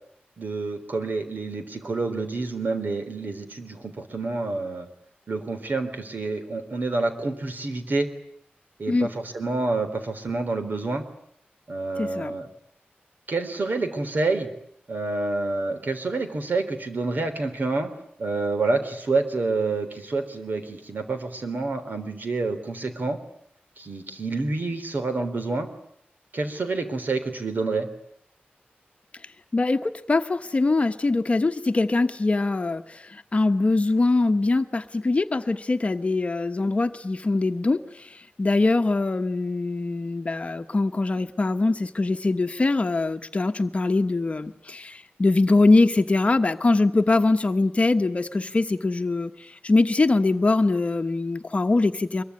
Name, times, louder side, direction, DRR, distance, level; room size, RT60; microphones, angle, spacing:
voice 1, 0.4-4.9 5.3-8.1 8.8-11.0 11.7-12.5 13.3-14.5 14.9-17.9 18.2-23.2 23.8-25.7 26.3-27.9, right 3 dB, 55° right, 8 dB, 3.8 m, -28 dB
voice 2, 12.0-12.3 29.5-52.2, left 3 dB, 35° left, 7 dB, 1.2 m, -23 dB
24.5 x 23.0 x 9.8 m, 0.72 s
wide cardioid pair, 135°, 4 cm